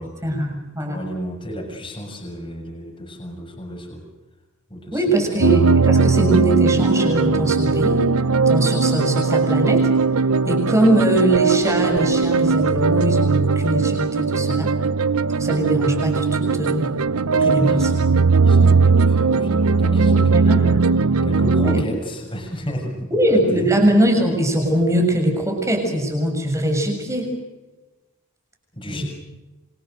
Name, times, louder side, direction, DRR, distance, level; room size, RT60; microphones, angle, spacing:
voice 1, 0.2-1.0 4.9-8.0 8.5-9.8 10.5-14.7 15.4-17.0 17.4-17.9 18.3-18.5 19.9-20.9 21.5-21.8 23.1-27.3 28.9-29.0, right 1 dB, 15° right, 4 dB, 6.9 m, -21 dB
voice 2, 0.8-4.1 4.7-5.2 17.3-18.2 18.4-20.8 21.2-23.7 28.8-29.0, equal, 20° left, 0 dB, 6.8 m, -32 dB
sound 1, 5.4-21.8, right 4 dB, 75° right, 0.8 m, -18 dB
29.0 x 25.5 x 6.6 m, 1.1 s
head